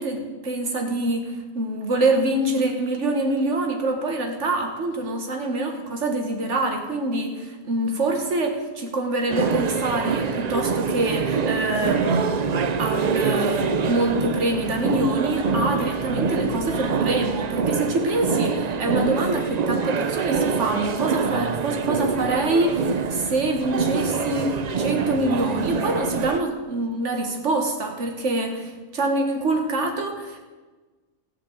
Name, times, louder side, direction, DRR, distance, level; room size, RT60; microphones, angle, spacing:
voice 1, 0.0-30.4, right 2 dB, 55° right, 3 dB, 1.9 m, -25 dB
sound 1, 9.3-26.4, right 5 dB, 80° right, 0.3 m, -25 dB
14.5 x 5.1 x 8.4 m, 1.3 s
omnidirectional pair, 1.5 m